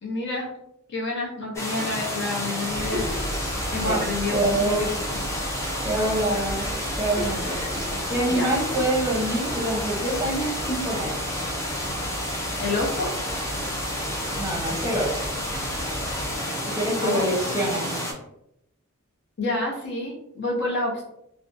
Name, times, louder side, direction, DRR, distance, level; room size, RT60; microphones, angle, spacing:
voice 1, 0.0-0.5 0.9-3.0 3.7-4.8 5.1-5.2 8.3-8.5 12.6-13.1 17.0-18.1 19.4-21.0, left 2 dB, 55° left, -2 dB, 0.8 m, -29 dB
sound 1, 1.6-18.1, equal, 15° left, 0.4 m, -30 dB
sound 2, 2.7-16.4, equal, 30° left, 1.1 m, -37 dB
voice 2, 4.3-4.9 5.8-6.7 7.0-7.6 8.1-11.2 14.4-15.3 16.7-18.0, right 1 dB, 15° right, -3 dB, 0.7 m, -26 dB
2.6 x 2.1 x 2.5 m, 0.80 s
head